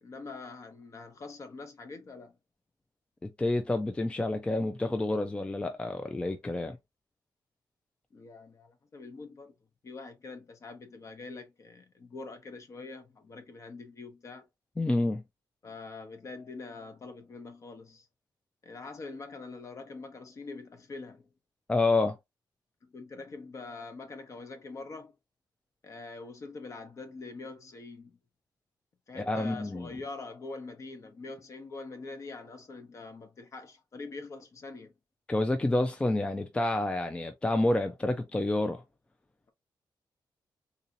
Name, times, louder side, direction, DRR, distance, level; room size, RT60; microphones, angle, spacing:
voice 1, 0.0-2.3 8.1-9.5 9.8-14.4 15.6-18.1 18.6-21.3 22.8-25.1 25.8-28.2 29.1-34.9, left 3 dB, 40° left, 0.9 m, -44 dB
voice 2, 3.2-6.8 14.8-15.2 21.7-22.2 29.2-29.9 35.3-38.8, left 2 dB, 15° left, 0.3 m, -28 dB
3.8 x 2.8 x 2.6 m
wide cardioid pair, 170°, 8 cm